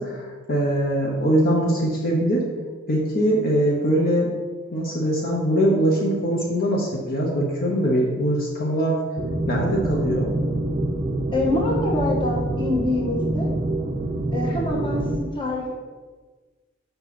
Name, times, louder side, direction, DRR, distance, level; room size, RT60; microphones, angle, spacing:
voice 1, 0.0-2.5 2.9-4.3 4.7-9.0 9.5-10.3, right 1 dB, 50° left, -2 dB, 1.0 m, -22 dB
sound 1, 9.2-15.2, right 1 dB, 30° right, 0.4 m, -26 dB
voice 2, 11.3-13.5 14.3-15.8, left 2 dB, 25° left, -2 dB, 1.2 m, -25 dB
5.3 x 4.4 x 5.9 m, 1.4 s
head